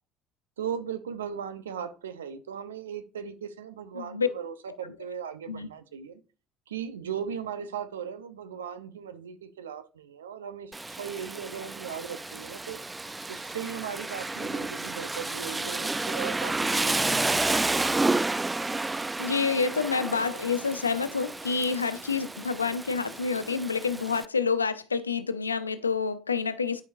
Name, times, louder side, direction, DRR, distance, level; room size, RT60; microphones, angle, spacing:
voice 1, 0.6-6.2 6.7-12.8 13.3-17.6, right 8 dB, 80° right, 0.7 m, -38 dB
voice 2, 3.9-4.3 5.5-5.7 19.2-26.8, left 5 dB, 85° left, 0.5 m, -28 dB
Rain, 10.7-24.2, right 2 dB, 15° right, 0.3 m, -31 dB
11.0 x 5.2 x 2.6 m
figure-of-eight pair, 60°, 0 cm